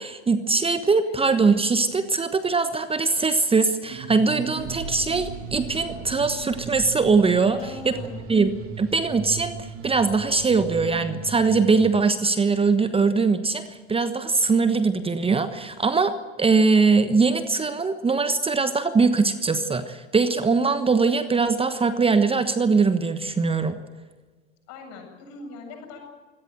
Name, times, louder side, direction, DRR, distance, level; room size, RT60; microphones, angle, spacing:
voice 1, 0.0-7.6 7.8-7.9 8.3-8.5 8.8-23.8, right 4 dB, 15° right, 11 dB, 1.2 m, -21 dB
sound 1, 3.9-11.9, right 7 dB, 40° right, 2.7 m, -38 dB
sound 2, 4.6-10.8, right 3 dB, 60° right, 6.4 m, -42 dB
voice 2, 7.4-8.3 24.7-26.0, left 3 dB, 50° left, 3 dB, 8.0 m, -40 dB
24.5 x 18.0 x 7.8 m, 1.4 s
figure-of-eight pair, 75°, 34 cm